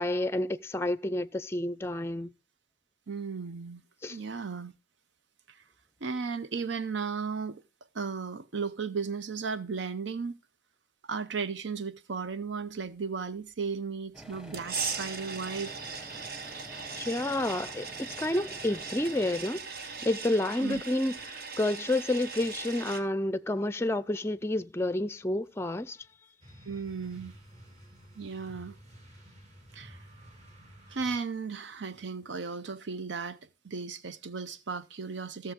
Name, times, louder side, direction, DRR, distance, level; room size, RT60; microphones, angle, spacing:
voice 1, 0.0-2.3 4.0-4.2 16.9-26.0, left 1 dB, 15° left, 0.4 m, -30 dB
voice 2, 3.1-3.8 4.1-4.7 5.5-5.6 6.0-7.6 7.9-10.4 11.0-15.7 20.6-20.8 26.6-27.3 28.2-28.8 29.7-30.0 30.9-35.5, right 5 dB, 80° right, 0.7 m, -35 dB
sound 1, 14.1-21.1, equal, 5° right, 1.1 m, -49 dB
sound 2, 14.5-23.0, right 5 dB, 55° right, 1.3 m, -39 dB
sound 3, 26.4-31.6, equal, 40° right, 3.3 m, -52 dB
16.0 x 7.0 x 3.6 m
head